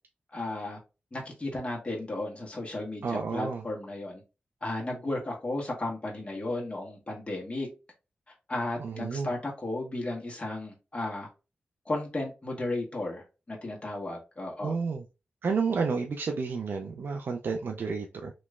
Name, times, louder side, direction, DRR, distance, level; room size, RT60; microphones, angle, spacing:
voice 1, 0.3-0.8 1.1-4.2 4.6-7.7 8.5-11.3 11.8-14.7, left 2 dB, 30° left, 1.3 m, -34 dB
voice 2, 3.0-3.6 8.8-9.3 14.6-15.0 15.4-18.3, right 5 dB, 70° right, 0.4 m, -31 dB
3.0 x 3.0 x 2.4 m
cardioid pair, 55°, 4 cm